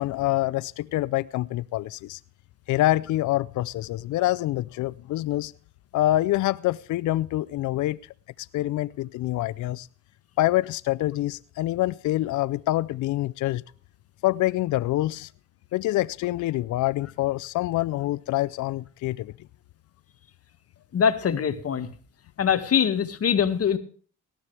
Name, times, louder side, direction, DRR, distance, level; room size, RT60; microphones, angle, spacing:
voice 1, 0.0-2.2 2.7-5.5 5.9-8.0 8.4-9.9 10.4-13.6 14.2-15.3 15.7-19.3, left 16 dB, 75° left, 0.5 m, -26 dB
voice 2, 20.9-21.9 22.4-23.8, left 7 dB, 50° left, 2.0 m, -23 dB
18.5 x 13.0 x 3.4 m
cardioid pair, 90°, 30 cm